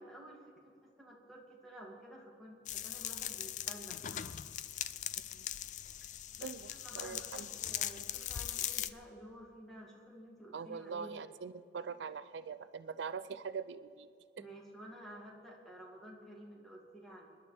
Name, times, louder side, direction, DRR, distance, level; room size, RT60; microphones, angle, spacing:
voice 1, 0.0-4.5 6.4-11.1 14.4-17.4, equal, ahead, -3 dB, 2.4 m, -52 dB
sound 1, 2.7-8.9, left 11 dB, 40° left, 0.3 m, -40 dB
voice 2, 6.4-7.5 10.5-14.1 14.4-14.5, right 5 dB, 80° right, 12 dB, 0.4 m, -43 dB
26.0 x 11.0 x 3.4 m, 2.4 s
head